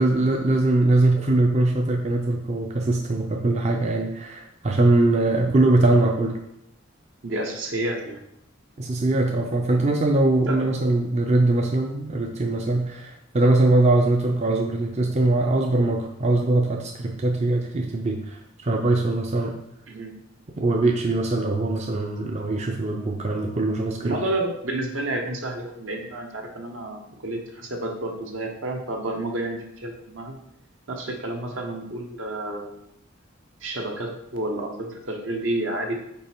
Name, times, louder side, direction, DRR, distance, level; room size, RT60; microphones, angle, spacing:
voice 1, 0.0-6.4 8.8-19.6 20.6-24.2, right 2 dB, 35° right, 2 dB, 0.5 m, -22 dB
voice 2, 7.2-8.2 10.5-10.8 19.9-20.1 24.0-30.3 30.9-32.8 33.6-36.0, right 1 dB, 75° right, 2 dB, 1.1 m, -30 dB
5.4 x 4.1 x 4.4 m, 0.76 s
head